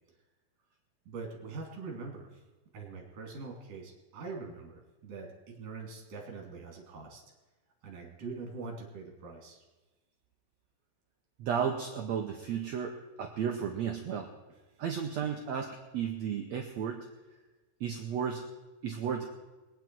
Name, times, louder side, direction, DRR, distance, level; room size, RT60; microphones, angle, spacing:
voice 1, 1.0-2.4 2.7-7.2 7.8-9.6, right 4 dB, 50° right, 0 dB, 3.3 m, -43 dB
voice 2, 11.4-14.3 14.8-17.0 17.8-18.4 18.8-19.3, right 7 dB, 75° right, 3 dB, 1.6 m, -33 dB
22.0 x 9.4 x 4.6 m, 1.2 s
omnidirectional pair, 4.2 m